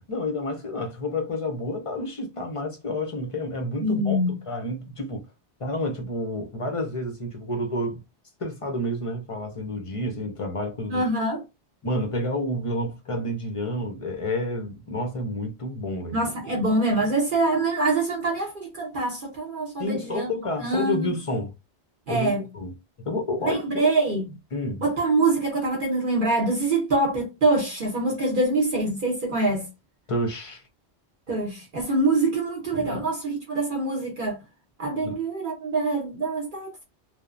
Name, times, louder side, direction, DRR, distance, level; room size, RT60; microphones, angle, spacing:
voice 1, 0.1-4.2 4.5-5.3 5.6-8.0 8.4-11.1 11.8-16.2 19.8-21.5 22.1-22.7 23.0-23.8 24.5-24.8 30.1-30.6 32.7-33.0 35.0-35.2, left 1 dB, 40° left, 0.5 m, -29 dB
voice 2, 3.8-4.3 10.9-11.4 16.1-20.3 20.6-21.1 22.1-22.4 23.4-24.3 24.8-29.7 31.3-34.4 34.8-36.8, right 2 dB, 55° right, 0.8 m, -24 dB
3.0 x 2.0 x 2.4 m
omnidirectional pair, 1.1 m